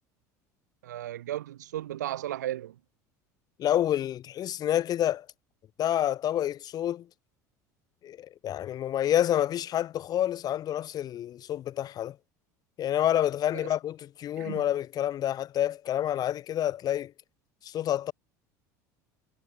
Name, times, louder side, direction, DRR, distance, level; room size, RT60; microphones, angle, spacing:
voice 1, 0.8-2.8 13.6-13.7 14.4-14.6, right 13 dB, 85° right, 1.7 m, -35 dB
voice 2, 3.6-5.3 5.8-7.1 8.0-12.2 12.8-17.1 17.6-18.1, left 11 dB, 45° left, 1.7 m, -28 dB
hypercardioid pair, 85°, 9 cm